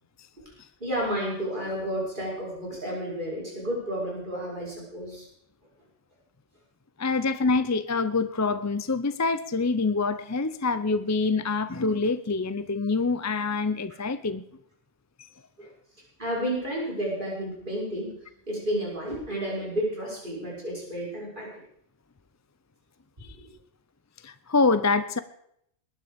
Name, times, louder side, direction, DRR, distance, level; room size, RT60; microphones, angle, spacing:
voice 1, 0.8-5.3 15.6-15.7 16.2-18.2 18.5-21.5 23.2-23.5, equal, 45° right, 6.3 m, -31 dB
voice 2, 7.0-14.4 23.2-23.4 24.2-25.2, left 3 dB, 25° left, 0.4 m, -26 dB
21.0 x 10.0 x 5.2 m
omnidirectional pair, 1.2 m